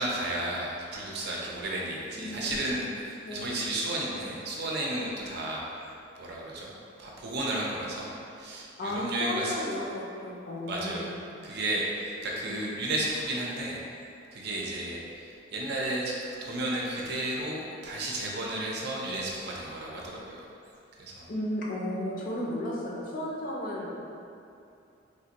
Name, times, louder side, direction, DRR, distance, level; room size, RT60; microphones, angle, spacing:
voice 1, 0.0-5.6 6.2-6.7 7.0-9.6 10.7-11.1 11.4-13.8 14.3-20.5 21.0-21.3, right 1 dB, 60° right, -3 dB, 0.5 m, -33 dB
voice 2, 2.2-2.7 3.2-3.5 8.8-11.2 12.5-12.9 21.3-24.0, left 1 dB, 45° left, -3 dB, 0.5 m, -34 dB
3.3 x 2.5 x 2.8 m, 2.6 s
head